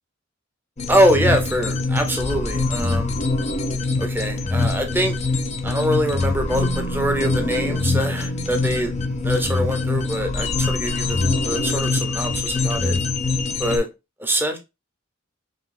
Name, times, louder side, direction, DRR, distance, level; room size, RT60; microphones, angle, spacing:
sound 1, 0.8-13.8, left 3 dB, 35° left, 0.6 m, -24 dB
voice 1, 0.9-3.1 4.0-5.1 5.6-8.9 9.2-11.2 11.5-13.0 13.6-13.9 14.2-14.6, equal, 10° right, 0.9 m, -23 dB
sound 2, 6.5-10.3, right 8 dB, 85° left, 1.5 m, -37 dB
5.0 x 3.0 x 2.6 m
head